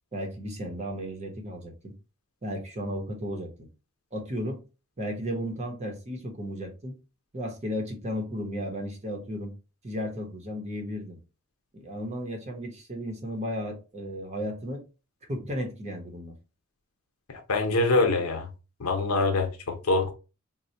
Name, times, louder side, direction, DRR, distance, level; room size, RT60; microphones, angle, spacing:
voice 1, 0.1-1.9 2.4-3.7 4.1-4.6 5.0-7.0 7.3-9.6 9.8-11.2 11.7-14.8 15.3-16.3, equal, 30° right, 0.8 m, -34 dB
voice 2, 17.3-18.5 18.8-20.1, left 2 dB, 85° left, 0.8 m, -25 dB
4.2 x 2.1 x 2.7 m
head